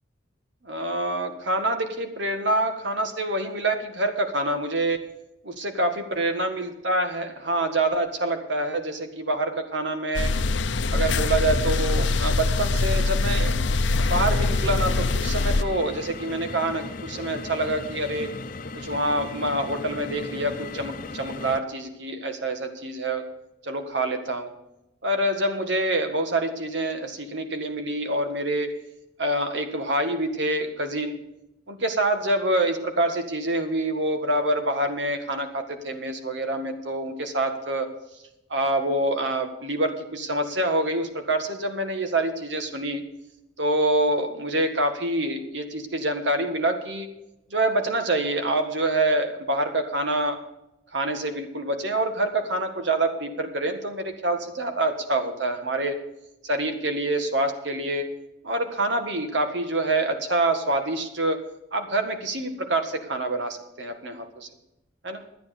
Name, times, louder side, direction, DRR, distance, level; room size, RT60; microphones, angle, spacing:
voice 1, 0.6-5.0 5.4-10.3 10.9-13.5 14.1-18.3 18.7-23.2 23.6-24.5 25.0-28.7 29.2-31.2 31.7-37.9 38.5-43.0 43.6-47.1 47.5-50.4 50.9-56.0 56.4-58.1 58.4-61.4 61.7-64.5 65.0-65.2, right 1 dB, 75° right, 6 dB, 1.8 m, -26 dB
sound 1, 10.1-15.6, left 3 dB, 80° left, 0.7 m, -23 dB
Funicular cable car, 14.0-21.6, left 3 dB, 45° left, 0.8 m, -37 dB
12.0 x 9.8 x 6.7 m, 0.88 s
head